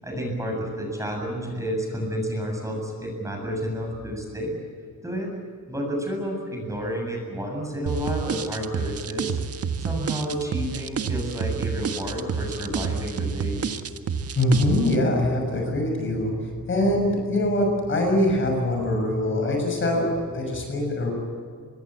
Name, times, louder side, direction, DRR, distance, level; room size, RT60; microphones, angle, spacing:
voice 1, 0.0-4.5 5.0-5.4 5.7-9.4 9.8-13.7, equal, 10° right, 1 dB, 7.8 m, -30 dB
sound 1, 7.9-15.0, right 6 dB, 50° right, 1.6 m, -29 dB
voice 2, 14.4-21.1, left 1 dB, 40° left, 2 dB, 6.5 m, -23 dB
26.0 x 22.0 x 8.6 m, 2.2 s
cardioid pair, 145°, 32 cm